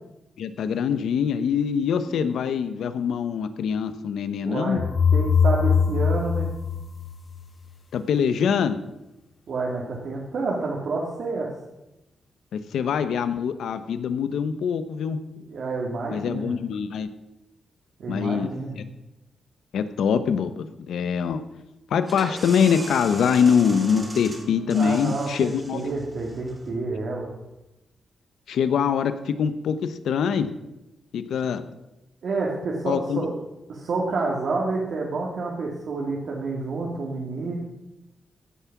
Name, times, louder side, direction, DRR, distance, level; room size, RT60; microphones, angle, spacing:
voice 1, 0.4-4.8 7.9-8.8 12.5-15.2 16.1-17.1 18.1-18.5 18.8-18.9 19.7-21.4 21.9-25.8 28.5-30.5 31.1-31.7 32.9-33.2, left 7 dB, 90° left, 11 dB, 0.9 m, -24 dB
voice 2, 4.4-4.8 5.1-6.5 9.5-11.5 15.5-16.6 18.0-18.8 24.7-27.3 32.2-33.4 33.7-37.5, right 3 dB, 60° right, -3 dB, 2.3 m, -29 dB
sound 1, 4.8-7.7, left 6 dB, 30° left, 0.8 m, -22 dB
sound 2, 22.0-27.5, right 1 dB, 20° right, 2.6 m, -39 dB
15.5 x 8.4 x 6.0 m, 0.94 s
wide cardioid pair, 135°, 0 cm